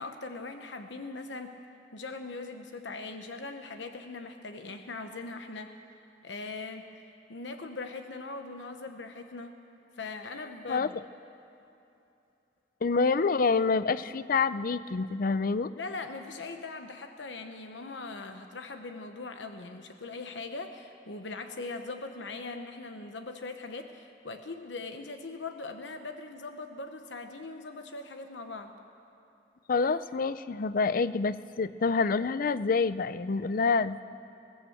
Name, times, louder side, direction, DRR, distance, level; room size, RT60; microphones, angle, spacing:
voice 1, 0.0-1.6 1.9-5.7 6.2-6.9 7.3-9.5 10.0-11.0 15.8-28.7, left 3 dB, 75° left, 6 dB, 1.0 m, -40 dB
voice 2, 10.7-11.0 12.8-15.7 29.7-34.0, left 4 dB, 50° left, 15 dB, 0.5 m, -27 dB
21.0 x 16.0 x 7.9 m, 2.8 s
head